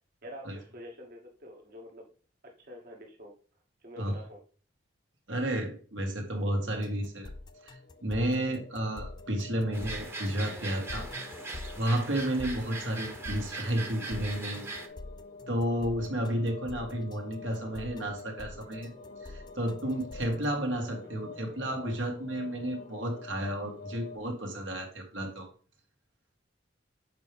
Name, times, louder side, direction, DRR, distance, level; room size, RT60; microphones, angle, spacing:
voice 1, 0.2-2.1 2.6-3.3 3.8-4.4, equal, 55° right, 0 dB, 1.2 m, -46 dB
voice 2, 5.3-7.3 7.6-11.1 11.8-14.7 15.5-18.9 19.2-25.5, right 1 dB, 85° right, 2 dB, 1.8 m, -32 dB
sound 1, 6.3-24.2, left 3 dB, 45° left, 0.7 m, -48 dB
sound 2, 6.8-20.4, left 2 dB, 25° left, 0.4 m, -45 dB
sound 3, 9.7-14.9, right 3 dB, 15° right, 0.8 m, -40 dB
6.7 x 4.7 x 3.4 m, 0.40 s
head